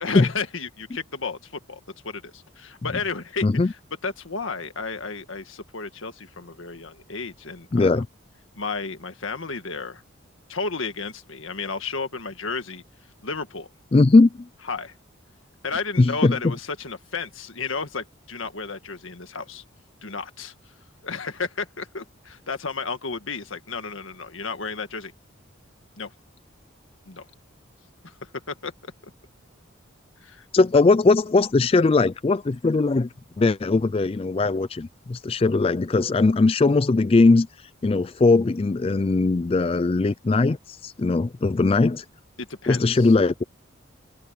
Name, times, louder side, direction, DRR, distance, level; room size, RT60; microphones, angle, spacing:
voice 1, 0.0-3.8 4.0-8.0 8.6-10.0 10.5-12.8 13.2-13.7 14.7-14.9 15.6-19.6 20.0-20.5 21.0-25.1 26.0-26.1 27.1-27.3 28.0-28.1 28.5-28.7 30.2-30.5 42.4-43.1, left 4 dB, 80° left, 1.7 m, -32 dB
voice 2, 7.7-8.1 13.9-14.3 16.0-16.5 30.5-33.1 33.4-37.5 37.8-42.0 42.7-43.4, left 3 dB, 30° left, 0.3 m, -19 dB
open air
head